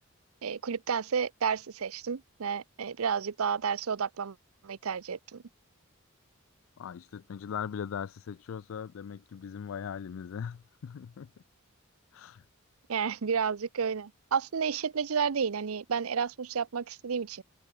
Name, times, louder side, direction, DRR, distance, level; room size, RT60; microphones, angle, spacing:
voice 1, 0.4-4.4 4.6-5.4 12.9-17.4, right 6 dB, 85° right, 0.6 m, -31 dB
voice 2, 6.8-11.3 12.1-12.4, left 7 dB, 65° left, 0.4 m, -39 dB
head